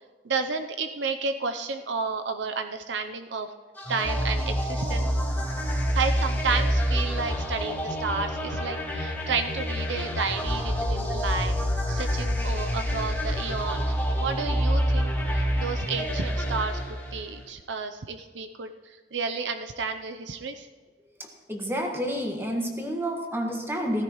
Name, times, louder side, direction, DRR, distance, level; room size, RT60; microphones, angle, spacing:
voice 1, 0.2-3.5 3.9-5.1 5.9-11.5 11.9-13.9 14.2-20.7, right 4 dB, 75° right, 7 dB, 0.7 m, -31 dB
sound 1, 3.8-17.4, equal, 10° left, 3.0 m, -27 dB
voice 2, 21.2-24.0, equal, 15° right, 1 dB, 1.7 m, -29 dB
16.0 x 14.5 x 3.1 m, 1.4 s
head